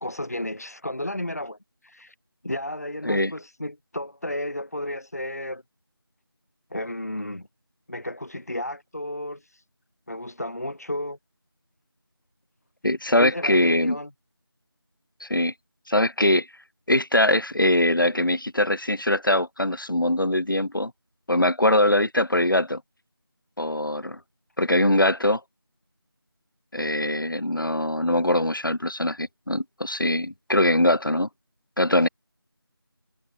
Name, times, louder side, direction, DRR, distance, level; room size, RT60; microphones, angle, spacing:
voice 1, 0.0-2.1 2.4-5.6 6.7-7.5 7.9-9.6 10.1-11.2 13.2-14.1, left 1 dB, 40° left, 1.2 m, -33 dB
voice 2, 12.8-14.0 15.2-15.5 15.9-16.5 16.9-20.9 21.3-22.8 23.6-24.2 24.6-25.4 26.7-31.3 31.8-32.1, left 1 dB, 55° left, 1.8 m, -22 dB
figure-of-eight pair, 175°, 13 cm